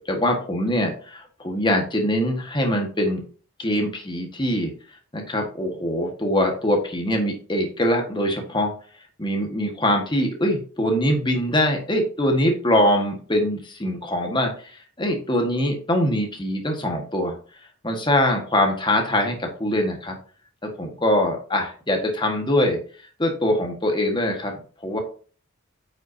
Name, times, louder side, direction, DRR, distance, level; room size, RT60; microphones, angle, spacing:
voice 1, 0.0-3.2 3.6-4.7 5.1-8.7 9.2-17.4 17.8-20.2 20.6-22.8 23.2-25.0, left 1 dB, 20° left, 3 dB, 1.5 m, -23 dB
9.3 x 6.0 x 2.7 m, 0.41 s
head